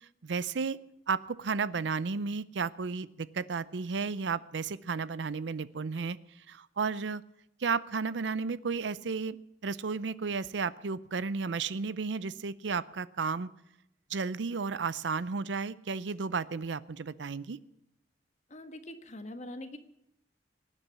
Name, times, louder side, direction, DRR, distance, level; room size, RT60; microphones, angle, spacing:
voice 1, 0.2-0.8 1.1-6.2 6.5-7.2 7.6-9.4 9.6-13.5 14.1-17.6, right 5 dB, 90° right, 17 dB, 0.6 m, -33 dB
voice 2, 18.5-19.8, left 1 dB, 40° left, 8 dB, 1.4 m, -43 dB
19.0 x 10.0 x 7.3 m, 0.82 s
head